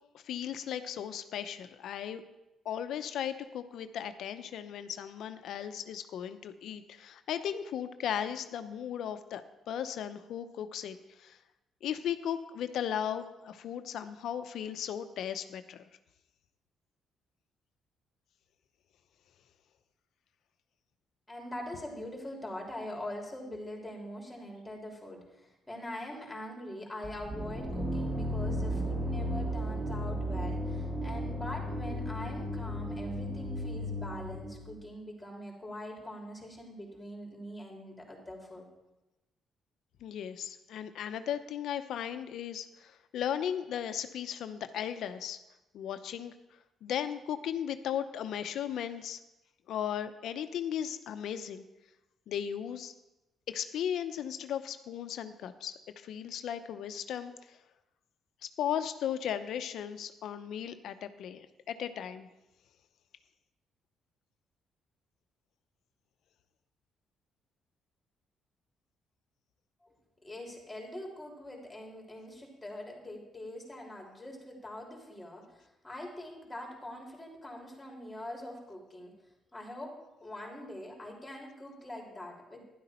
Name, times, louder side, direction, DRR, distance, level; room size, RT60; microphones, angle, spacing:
voice 1, 0.2-2.2 2.6-11.4 11.8-15.9 40.0-45.4 45.7-46.3 46.8-49.2 49.7-51.6 52.3-52.9 53.5-57.6 58.6-62.3, left 9 dB, 75° left, 10 dB, 0.7 m, -36 dB
voice 2, 21.3-38.7 69.8-69.9 70.2-79.1 79.5-79.9 80.2-82.7, left 1 dB, 10° left, -1 dB, 3.3 m, -43 dB
sound 1, 27.0-34.9, equal, 20° right, 1.7 m, -35 dB
12.0 x 11.0 x 4.4 m, 0.97 s
cardioid pair, 90°, 0 cm